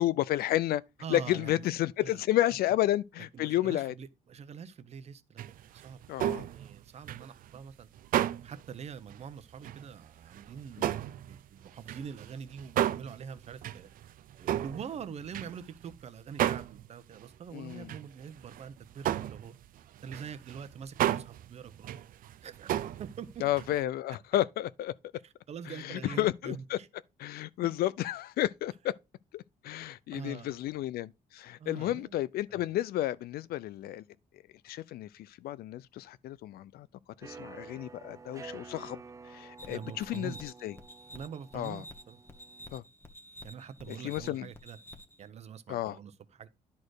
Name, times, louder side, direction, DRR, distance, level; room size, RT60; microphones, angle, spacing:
voice 1, 0.0-0.8 1.1-3.9 6.1-6.5 10.8-10.9 17.5-17.9 23.4-24.9 25.8-26.8 27.2-28.9 29.3-34.0 34.6-36.9 37.2-39.0 39.3-40.7 41.5-41.8 42.7-42.8 43.9-44.5 45.7-46.0, left 14 dB, 80° left, 0.5 m, -31 dB
voice 2, 1.0-1.7 2.0-2.3 3.3-5.4 5.7-6.0 6.4-7.9 8.4-13.9 14.4-19.5 20.0-22.0 22.4-22.7 23.0-23.4 25.2-26.9 30.1-30.6 31.6-32.1 32.5-32.7 39.7-40.4 41.1-42.2 43.4-44.8 45.2-46.5, right 7 dB, 45° right, 0.8 m, -44 dB
sound 1, 5.4-8.6 9.1-9.2 9.6-9.9 10.2-15.9 16.4-16.9 17.1-17.2 17.7-18.1 18.4-18.7 18.9-23.8, right 12 dB, 65° right, 0.5 m, -33 dB
sound 2, 37.2-42.8, right 4 dB, 20° right, 0.6 m, -50 dB
sound 3, 39.6-45.3, equal, 15° left, 1.2 m, -51 dB
10.5 x 4.4 x 4.8 m
cardioid pair, 145°, 16 cm